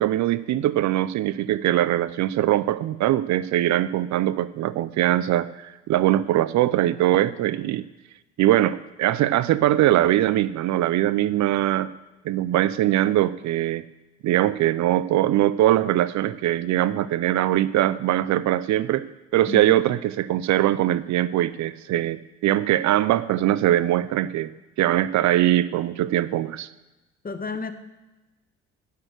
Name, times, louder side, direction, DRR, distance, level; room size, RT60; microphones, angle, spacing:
voice 1, 0.0-7.9 8.4-11.9 12.2-13.8 14.2-19.1 19.3-24.5 24.8-26.7, right 13 dB, 60° right, 17 dB, 0.6 m, -22 dB
voice 2, 19.5-19.8 27.2-27.7, left 4 dB, 25° left, 9 dB, 1.5 m, -31 dB
16.5 x 6.6 x 6.7 m, 1.1 s
hypercardioid pair, 65°, 33 cm